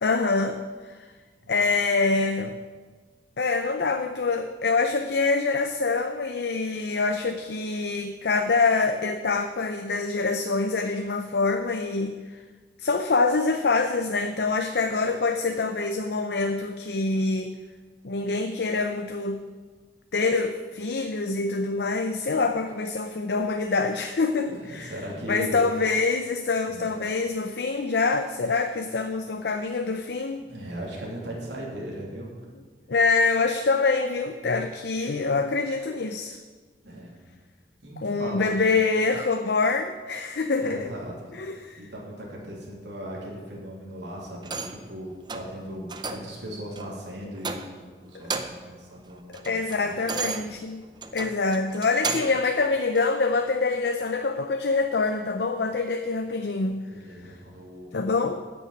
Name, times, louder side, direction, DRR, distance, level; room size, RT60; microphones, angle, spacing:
voice 1, 0.0-1.0 1.5-2.6 3.4-12.4 12.8-17.6 18.0-19.4 20.1-24.9 25.3-30.4 32.9-36.4 38.0-40.9 41.3-41.8 49.3-50.8 51.1-56.8 57.9-58.4, left 3 dB, 70° left, 6 dB, 0.6 m, -25 dB
voice 2, 24.5-25.7 26.7-26.9 30.4-32.7 36.8-37.1 37.8-38.5 40.6-41.3 41.8-50.5 56.9-57.9, right 1 dB, 85° right, -3 dB, 3.0 m, -38 dB
sound 1, 44.4-44.9 45.3-45.5 45.9-46.3 46.8-46.9 47.4-47.9 48.2-48.7 49.1-52.4 52.9-53.1, right 4 dB, 25° right, 0.6 m, -34 dB
9.1 x 6.9 x 8.5 m, 1.4 s
head